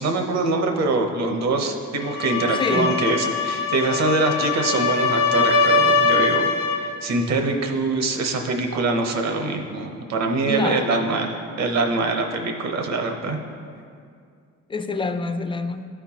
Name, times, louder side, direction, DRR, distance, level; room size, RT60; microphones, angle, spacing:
voice 1, 0.0-6.5 6.8-13.4, right 3 dB, 60° right, 4 dB, 0.9 m, -24 dB
sound 1, 2.0-6.9, left 4 dB, 85° left, 0.8 m, -22 dB
voice 2, 2.5-2.9 10.5-10.9 14.7-15.9, left 3 dB, 15° left, 8 dB, 0.4 m, -26 dB
12.5 x 4.5 x 2.9 m, 2.3 s
cardioid pair, 90°, 30 cm